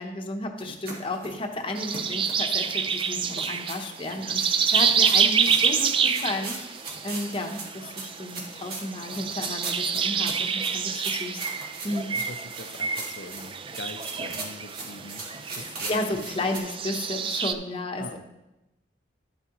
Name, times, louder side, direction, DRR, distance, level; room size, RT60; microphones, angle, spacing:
voice 1, 0.0-6.6 7.0-11.4 11.8-12.1 15.9-18.2, left 2 dB, 30° left, 3 dB, 0.9 m, -33 dB
sound 1, 0.6-16.6, right 3 dB, 55° right, 1.8 m, -39 dB
sound 2, 1.8-17.5, right 6 dB, 30° right, 0.4 m, -28 dB
voice 2, 12.1-15.3 15.5-15.9 18.0-18.2, left 3 dB, 65° left, 9 dB, 0.6 m, -42 dB
11.0 x 8.2 x 3.0 m, 0.94 s
head